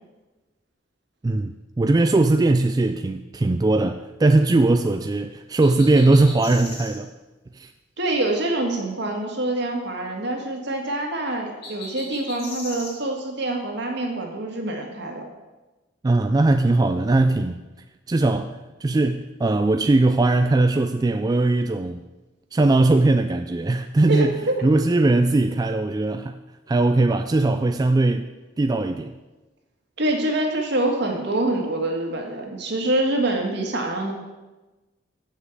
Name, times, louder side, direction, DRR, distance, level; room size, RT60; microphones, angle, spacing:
voice 1, 1.2-7.1 7.5-7.7 16.0-17.6 18.1-22.0 22.5-24.4 24.6-26.4 26.7-28.3 28.6-29.1, right 2 dB, 20° right, 0.3 m, -20 dB
sound 1, 5.6-7.0 11.6-12.9, left 2 dB, 60° left, 3.0 m, -37 dB
voice 2, 8.0-15.2 24.1-24.5 30.0-34.1, right 1 dB, 65° right, 1.8 m, -25 dB
7.3 x 6.5 x 7.9 m
head